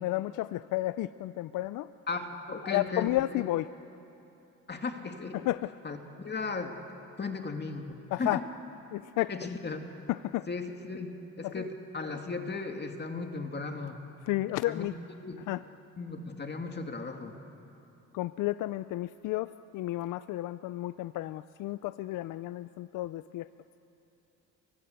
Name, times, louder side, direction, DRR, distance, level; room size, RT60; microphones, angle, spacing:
voice 1, 0.0-1.9 2.6-3.7 5.3-5.7 8.1-8.4 8.9-9.3 10.1-10.5 11.4-11.7 14.2-14.9 15.5-15.6 18.1-23.5, left 16 dB, 90° left, 14 dB, 0.5 m, -32 dB
voice 2, 2.1-3.1 3.3-3.4 4.7-5.4 5.8-6.7 7.2-8.4 9.3-9.8 10.5-14.0 14.7-14.9 15.2-15.5 16.0-17.3, left 4 dB, 35° left, 4 dB, 2.4 m, -36 dB
29.0 x 24.5 x 8.1 m, 2.9 s
cardioid pair, 90°, 30 cm